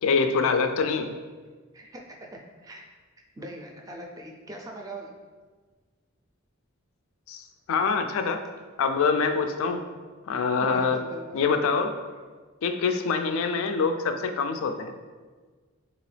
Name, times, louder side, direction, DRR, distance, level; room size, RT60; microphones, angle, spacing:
voice 1, 0.0-1.1 7.3-7.4 7.7-8.4 8.8-9.8 10.3-11.0 11.3-11.9 12.6-14.9, left 5 dB, 80° left, 6 dB, 0.3 m, -25 dB
voice 2, 1.7-2.9 3.4-5.1 10.6-11.4, right 1 dB, 15° right, 1 dB, 0.4 m, -41 dB
3.8 x 2.9 x 3.2 m, 1.4 s
head